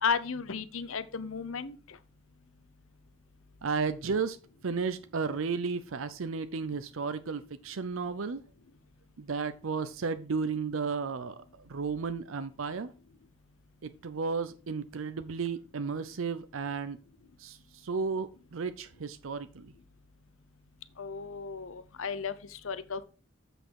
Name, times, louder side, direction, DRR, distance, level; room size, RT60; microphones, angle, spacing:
voice 1, 0.0-2.0 21.0-23.0, left 5 dB, 70° left, 0.8 m, -34 dB
voice 2, 3.6-4.4 4.6-8.5 9.2-12.9 13.8-17.0 17.4-19.7, right 5 dB, 70° right, 0.6 m, -33 dB
7.8 x 6.3 x 4.7 m
head